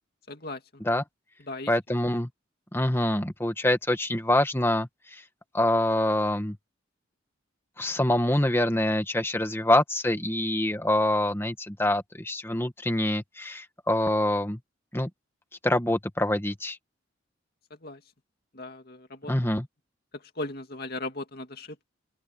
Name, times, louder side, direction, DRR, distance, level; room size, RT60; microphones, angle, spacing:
voice 1, 0.3-0.8 1.4-1.7 17.7-18.0 18.5-19.3 20.1-21.8, left 2 dB, 50° left, 2.4 m, -38 dB
voice 2, 1.7-2.3 2.7-4.9 5.5-6.6 7.8-14.6 14.9-15.1 15.6-16.8 19.3-19.7, left 1 dB, 10° left, 1.5 m, -25 dB
open air
head